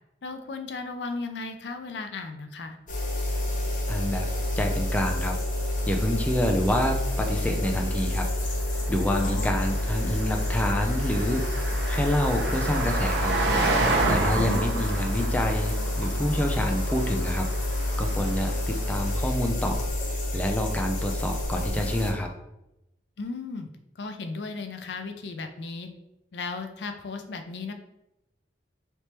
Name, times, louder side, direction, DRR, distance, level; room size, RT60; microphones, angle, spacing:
voice 1, 0.2-2.8 9.2-9.6 14.3-14.6 23.2-23.7 24.0-25.9 26.3-27.7, left 3 dB, 80° left, 7 dB, 0.5 m, -35 dB
sound 1, 2.9-22.1, left 1 dB, 45° left, 0.7 m, -28 dB
Car passing by, 3.5-19.2, right 2 dB, 75° right, 0.7 m, -32 dB
voice 2, 3.9-4.3 4.5-5.4 5.9-8.3 8.9-11.5 11.8-13.3 14.1-17.5 18.0-19.9 20.3-22.3, left 1 dB, 10° left, 2 dB, 0.4 m, -27 dB
3.3 x 3.0 x 4.3 m, 0.89 s
head